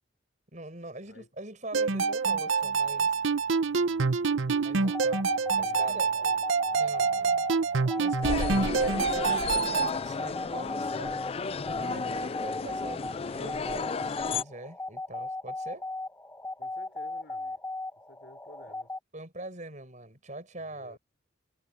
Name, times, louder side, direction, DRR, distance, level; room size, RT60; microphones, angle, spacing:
voice 1, 0.5-3.2 4.6-6.1 6.7-7.5 7.9-11.2 11.7-15.9 19.1-21.0, right 2 dB, 40° right, 7.0 m, -43 dB
sound 1, 1.7-9.9, right 5 dB, 85° right, 0.8 m, -26 dB
sound 2, 4.8-19.0, left 2 dB, 10° left, 1.6 m, -38 dB
voice 2, 5.2-6.8 16.6-17.6 18.1-18.9 20.6-21.0, left 1 dB, 60° left, 4.2 m, -53 dB
sound 3, 8.2-14.4, left 5 dB, 30° left, 0.3 m, -33 dB
head